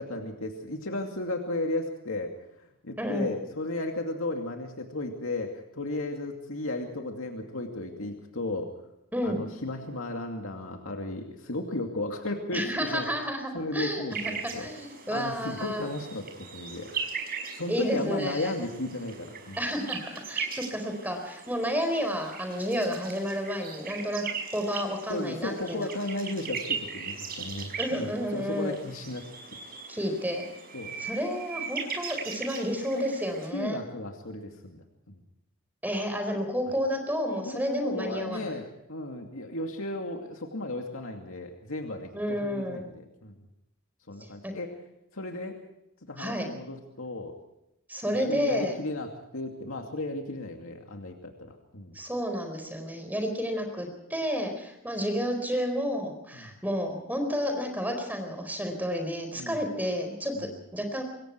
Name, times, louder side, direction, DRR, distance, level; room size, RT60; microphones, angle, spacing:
voice 1, 0.0-2.3 2.6-8.7 9.2-13.2 13.5-14.7 15.1-16.9 17.5-19.6 25.1-29.2 30.7-30.9 33.5-35.2 37.4-43.4 44.1-44.8 45.1-45.6 46.1-47.3 48.1-52.0 56.3-56.6 59.4-59.6 60.3-60.5, left 2 dB, 70° left, 3 dB, 2.5 m, -35 dB
voice 2, 3.0-3.3 9.1-9.4 12.5-14.3 14.6-15.9 17.7-18.5 19.6-20.0 20.3-24.2 24.5-25.9 27.8-28.8 29.9-30.5 31.0-33.8 35.8-38.6 42.1-42.8 44.4-44.5 46.2-46.5 47.9-48.7 51.9-61.0, equal, 10° right, 5 dB, 4.4 m, -31 dB
sound 1, 14.1-33.5, right 5 dB, 45° right, 5.6 m, -39 dB
26.5 x 21.5 x 4.7 m, 0.84 s
head